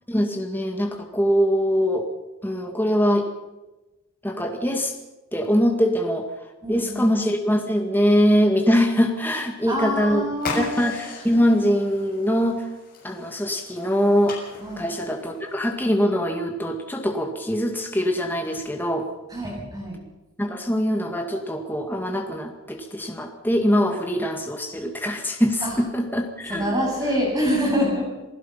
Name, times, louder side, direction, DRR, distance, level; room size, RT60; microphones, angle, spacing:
voice 1, 0.1-2.1 2.4-3.3 4.2-4.9 5.3-6.3 6.7-10.3 10.5-12.7 13.0-14.4 14.8-19.1 20.4-26.8, equal, 10° left, 3 dB, 2.0 m, -23 dB
voice 2, 6.6-7.1 9.7-10.7 14.6-14.8 19.3-20.0 25.6-25.7 26.5-28.1, equal, 15° right, -2 dB, 7.7 m, -25 dB
sound 1, 10.4-15.6, left 4 dB, 45° left, 6.8 m, -37 dB
28.0 x 16.0 x 5.8 m, 1.0 s
head